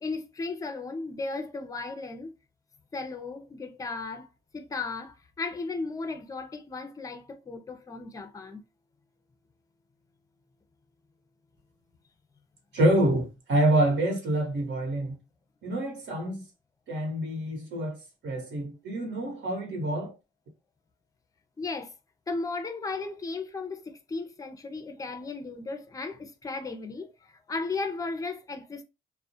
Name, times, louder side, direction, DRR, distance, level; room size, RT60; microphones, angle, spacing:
voice 1, 0.0-2.3 2.9-4.3 4.5-8.6 21.6-21.9 22.3-28.8, left 3 dB, 15° left, 0.5 m, -35 dB
voice 2, 12.7-15.2 15.6-16.4 16.9-20.1, right 1 dB, 65° right, 1.1 m, -27 dB
2.3 x 2.1 x 2.6 m
cardioid pair, 90°, 20 cm